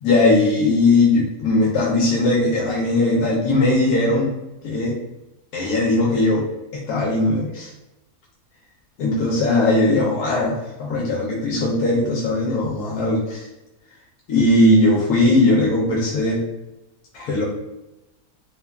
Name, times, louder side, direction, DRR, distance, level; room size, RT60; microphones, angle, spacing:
voice 1, 0.0-4.3 4.6-5.0 5.5-6.5 6.7-7.7 9.0-13.5 14.3-16.4 17.1-17.4, left 2 dB, 85° left, -5 dB, 1.1 m, -19 dB
3.1 x 2.2 x 2.2 m, 0.98 s
omnidirectional pair, 1.6 m